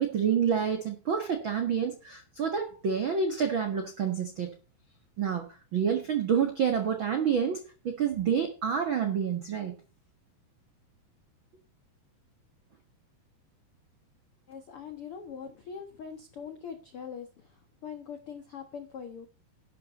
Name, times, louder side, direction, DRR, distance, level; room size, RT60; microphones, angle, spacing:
voice 1, 0.0-4.5 5.2-9.7, right 7 dB, 70° right, 1.1 m, -28 dB
voice 2, 14.5-17.3 17.8-19.3, left 7 dB, 80° left, 1.2 m, -42 dB
12.0 x 12.0 x 4.2 m
omnidirectional pair, 4.7 m